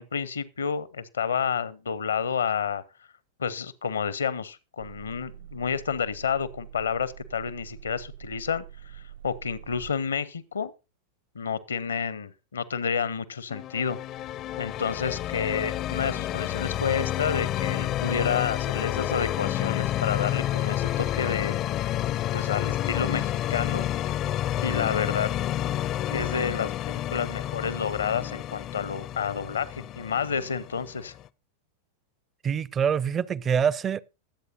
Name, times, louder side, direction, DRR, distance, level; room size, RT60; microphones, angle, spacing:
voice 1, 0.0-2.8 3.4-8.6 8.9-10.7 11.3-14.0 14.6-21.6 22.3-23.9 24.6-25.3 26.0-31.1, left 6 dB, 70° left, 0.8 m, -30 dB
sound 1, 4.8-9.9, right 11 dB, 65° right, 1.0 m, -46 dB
sound 2, 13.5-31.3, left 13 dB, 35° left, 0.5 m, -29 dB
voice 2, 32.4-34.0, right 7 dB, 25° right, 0.5 m, -25 dB
22.0 x 8.1 x 2.7 m
figure-of-eight pair, 90°, 0 cm